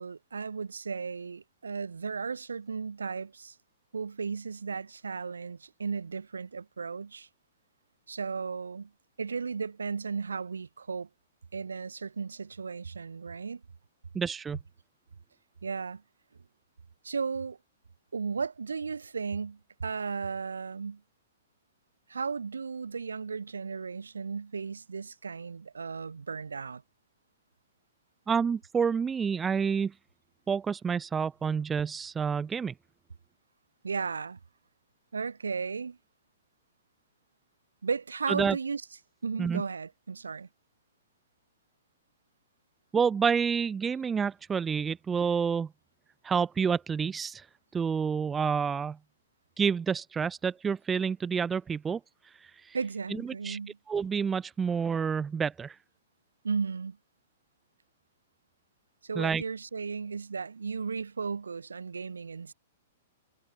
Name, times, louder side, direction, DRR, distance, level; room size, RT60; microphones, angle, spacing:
voice 1, 0.0-3.6 3.9-7.3 8.1-8.9 9.2-11.1 11.5-13.6 15.6-16.0 17.0-17.6 18.1-21.0 22.1-26.8 33.8-34.4 35.1-36.0 37.8-38.8 39.2-40.5 52.7-53.8 56.4-57.0 59.0-62.5, right 5 dB, 70° right, 8.0 m, -35 dB
voice 2, 14.1-14.6 28.3-29.9 30.5-32.7 38.3-38.6 39.4-39.6 42.9-45.7 46.2-47.5 47.7-49.0 49.6-52.0 52.4-52.7 53.1-53.6 53.9-55.8 59.2-59.4, right 6 dB, 15° right, 0.9 m, -28 dB
figure-of-eight pair, 105°, 0 cm